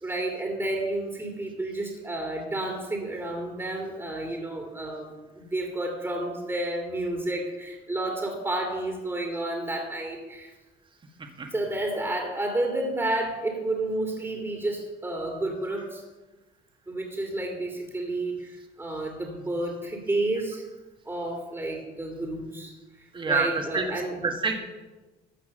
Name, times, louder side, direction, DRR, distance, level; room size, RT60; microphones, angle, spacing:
voice 1, 0.0-10.5 11.5-16.0 16.9-20.6 21.0-22.7 23.3-24.2, right 1 dB, 15° right, 0 dB, 2.4 m, -31 dB
voice 2, 23.1-24.6, right 4 dB, 30° right, 3 dB, 1.8 m, -27 dB
14.5 x 5.7 x 6.5 m, 1.2 s
cardioid pair, 110°, 17 cm